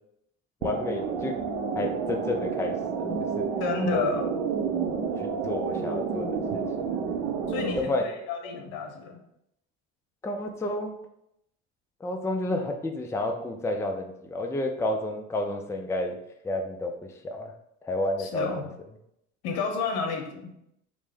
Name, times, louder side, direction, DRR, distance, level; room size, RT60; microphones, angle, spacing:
voice 1, 0.6-1.3 1.7-3.5 3.9-4.1 5.2-6.6 7.7-8.0 10.2-10.9 12.0-16.2 16.4-16.9 17.2-17.5 17.8-18.7, left 1 dB, 10° left, 4 dB, 0.5 m, -30 dB
sound 1, 0.6-7.8, right 5 dB, 75° right, 0.7 m, -30 dB
voice 2, 3.6-4.2 7.5-9.2 18.2-18.8 19.4-20.5, left 4 dB, 70° left, 3 dB, 0.9 m, -30 dB
5.0 x 2.2 x 3.4 m, 0.78 s
hypercardioid pair, 65°, 39 cm